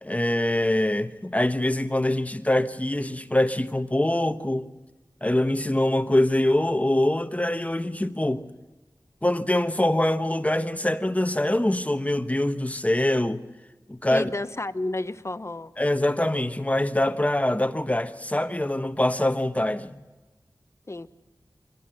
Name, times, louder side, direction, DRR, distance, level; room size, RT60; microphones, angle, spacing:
voice 1, 0.0-4.7 5.2-8.5 9.2-13.4 13.9-14.3 15.8-20.0, left 1 dB, 20° left, 1.1 m, -24 dB
voice 2, 14.1-15.7 20.9-21.1, left 2 dB, 40° left, 1.0 m, -31 dB
24.5 x 17.0 x 7.9 m
wide cardioid pair, 45°, 7 cm